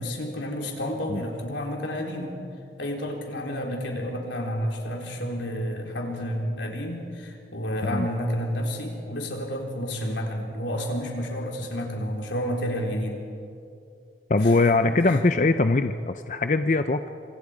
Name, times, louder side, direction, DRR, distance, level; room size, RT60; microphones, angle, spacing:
voice 1, 0.0-2.4 2.8-13.2 14.4-14.5 14.8-15.2, equal, 90° left, 1 dB, 4.0 m, -30 dB
voice 2, 14.3-17.1, left 3 dB, 40° left, 8 dB, 0.6 m, -22 dB
26.5 x 26.5 x 5.0 m, 2.5 s
head